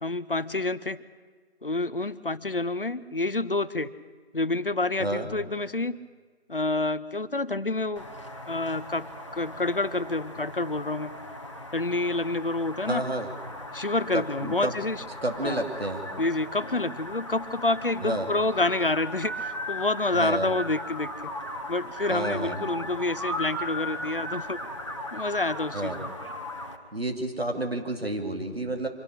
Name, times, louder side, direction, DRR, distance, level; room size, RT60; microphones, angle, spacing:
voice 1, 0.0-1.0 1.6-3.9 4.3-6.0 6.5-8.0 8.5-9.1 9.3-11.1 11.7-13.0 13.7-15.0 15.4-15.6 16.2-21.1 21.7-24.6 25.1-26.1, left 2 dB, 55° left, 15 dB, 0.8 m, -28 dB
voice 2, 5.0-5.3 12.9-13.3 14.1-14.7 15.2-16.1 18.0-18.3 20.1-20.5 22.1-22.7 25.7-26.1 26.9-28.9, right 1 dB, 65° right, 4 dB, 2.6 m, -30 dB
sound 1, 8.0-26.8, left 1 dB, 25° left, 1.3 m, -38 dB
25.0 x 12.0 x 9.9 m, 1.5 s
figure-of-eight pair, 170°, 33 cm